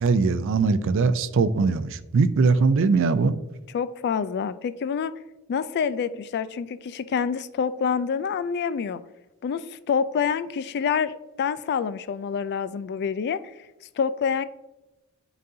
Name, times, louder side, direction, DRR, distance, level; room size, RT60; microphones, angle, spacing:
voice 1, 0.0-3.4, right 4 dB, 60° right, 13 dB, 0.4 m, -21 dB
voice 2, 3.7-5.1 5.5-9.0 9.4-13.4 14.0-14.4, left 6 dB, 50° left, 15 dB, 0.3 m, -27 dB
9.2 x 4.0 x 2.7 m, 1.0 s
head